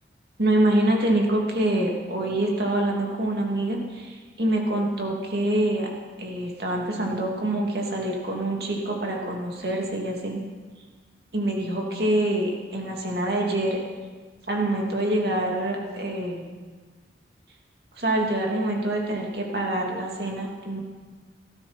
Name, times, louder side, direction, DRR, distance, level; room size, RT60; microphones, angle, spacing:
voice 1, 0.4-5.9 6.2-10.4 11.3-13.8 14.5-16.5 17.9-20.8, right 1 dB, 60° right, -1 dB, 2.8 m, -25 dB
17.5 x 14.5 x 4.5 m, 1.4 s
head